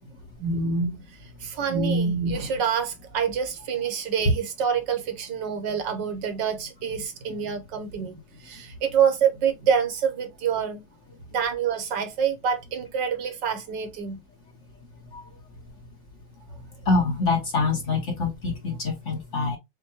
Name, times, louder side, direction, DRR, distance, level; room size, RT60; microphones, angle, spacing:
voice 1, 0.4-1.0 1.4-10.8 11.3-14.2, right 6 dB, 75° right, 1.6 m, -26 dB
voice 2, 16.9-19.6, left 3 dB, 45° left, 1.2 m, -25 dB
6.6 x 2.2 x 2.9 m
omnidirectional pair, 2.0 m